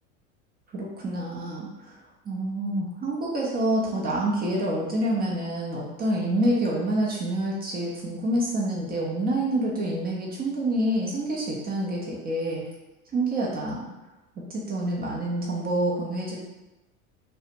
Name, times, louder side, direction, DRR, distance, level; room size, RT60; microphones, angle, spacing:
voice 1, 0.7-1.9 2.3-12.6 13.1-13.9 14.5-16.4, right 1 dB, 25° right, -4 dB, 0.5 m, -27 dB
2.3 x 2.1 x 2.8 m, 1.0 s
hypercardioid pair, 75°, 40 cm